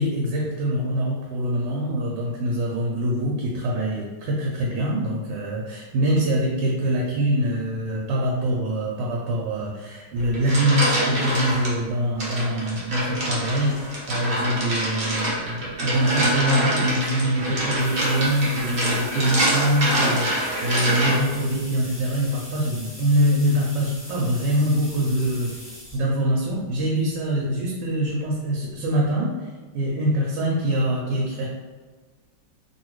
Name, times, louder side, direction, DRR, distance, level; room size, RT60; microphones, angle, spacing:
voice 1, 0.0-29.5 29.7-31.5, equal, 80° right, -3 dB, 1.2 m, -24 dB
sound 1, 10.2-11.7 12.2-21.4, right 1 dB, 50° right, 0.7 m, -25 dB
sound 2, 17.8-26.0 26.9-27.0 28.3-28.4 28.7-28.8 29.1-29.2, equal, 15° left, 0.4 m, -41 dB
2.9 x 2.7 x 3.0 m, 1.4 s
omnidirectional pair, 2.0 m